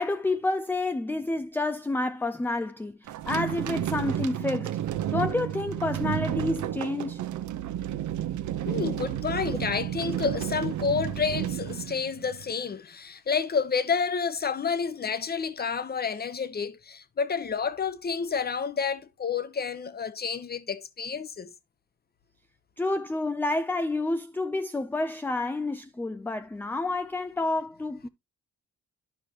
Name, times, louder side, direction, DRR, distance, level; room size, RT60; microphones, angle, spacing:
voice 1, 0.0-4.8 5.1-7.2 22.8-28.1, left 2 dB, 5° left, 0.4 m, -29 dB
sound 1, 3.1-12.5, right 12 dB, 75° right, 0.8 m, -31 dB
voice 2, 8.7-21.5, left 6 dB, 30° left, 1.0 m, -29 dB
12.0 x 4.9 x 2.9 m
cardioid pair, 90°, 30 cm